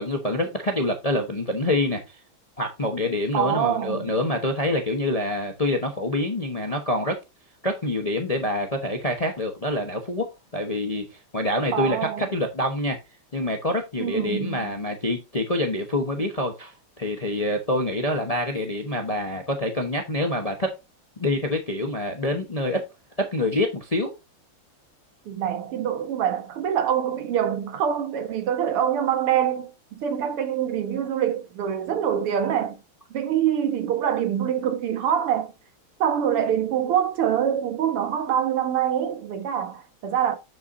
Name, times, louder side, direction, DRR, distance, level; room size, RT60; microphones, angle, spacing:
voice 1, 0.0-2.2 2.6-7.2 7.6-10.3 10.5-11.0 11.3-13.0 13.3-20.7 21.2-22.8 23.2-24.1, left 1 dB, 35° left, 0.6 m, -26 dB
voice 2, 3.3-4.2 11.7-12.3 14.0-14.7 25.3-32.8 33.1-35.5 36.0-40.4, right 9 dB, 90° right, 2.2 m, -25 dB
8.2 x 7.0 x 2.6 m
omnidirectional pair, 2.4 m